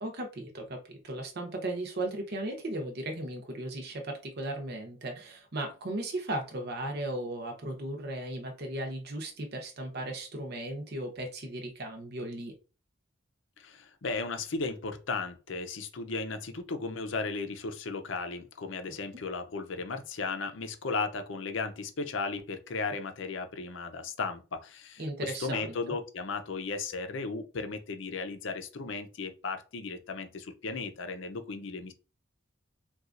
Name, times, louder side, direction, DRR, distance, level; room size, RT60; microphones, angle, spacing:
voice 1, 0.0-12.5 25.0-25.8, right 1 dB, 50° right, 0.7 m, -36 dB
voice 2, 13.6-31.9, left 4 dB, 65° left, 0.5 m, -35 dB
4.0 x 2.3 x 2.5 m
head